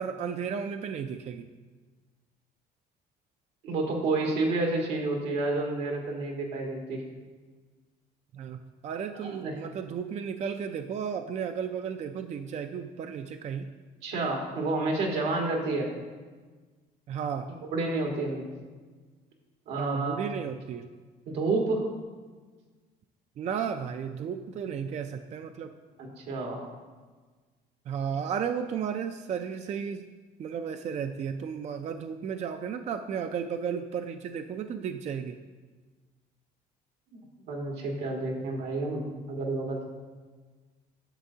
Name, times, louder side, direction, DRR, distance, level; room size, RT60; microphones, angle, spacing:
voice 1, 0.0-1.5 8.3-13.7 17.1-17.5 19.8-20.9 23.4-25.8 27.9-30.1 30.4-35.4, right 7 dB, 40° right, 7 dB, 0.4 m, -34 dB
voice 2, 3.6-7.0 9.2-9.6 14.0-15.9 17.7-18.5 19.7-20.2 21.3-21.8 26.0-26.6 37.5-39.0 39.3-39.8, right 2 dB, 85° right, 0 dB, 1.6 m, -29 dB
9.8 x 6.9 x 2.8 m, 1.4 s
cardioid pair, 110°, 17 cm